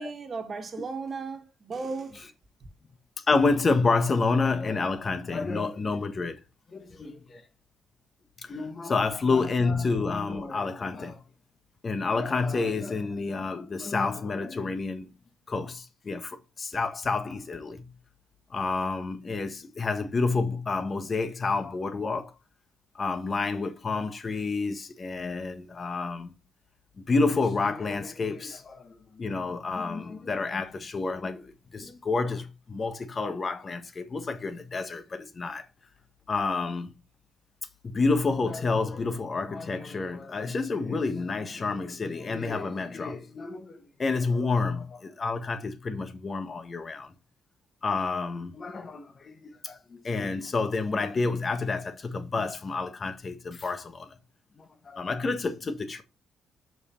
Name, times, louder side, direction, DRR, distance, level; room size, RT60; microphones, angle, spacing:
voice 1, 0.0-2.3, right 4 dB, 40° right, 1.7 m, -35 dB
voice 2, 3.2-6.4 6.7-7.4 8.4-11.2 11.8-15.1 15.5-17.9 18.5-22.3 22.9-26.3 27.0-35.6 36.3-36.9 37.8-47.1 47.8-54.2 54.6-56.0, left 3 dB, 35° left, 1.4 m, -29 dB
6.4 x 5.5 x 4.4 m
cardioid pair, 90°, 0 cm